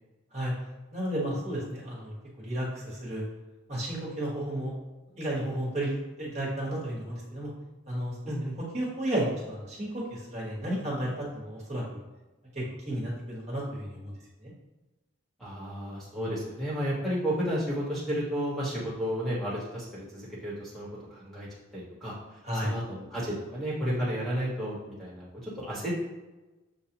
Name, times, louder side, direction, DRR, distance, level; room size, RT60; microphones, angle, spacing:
voice 1, 0.9-3.2 3.7-4.7 5.1-7.5 7.9-8.1 8.7-12.0 12.5-14.1 14.4-14.5 22.4-22.7, right 1 dB, 30° right, -6 dB, 1.3 m, -32 dB
voice 2, 8.2-8.5 15.4-22.1 22.5-25.9, equal, ahead, -7 dB, 1.3 m, -32 dB
7.2 x 2.4 x 2.9 m, 1.1 s
head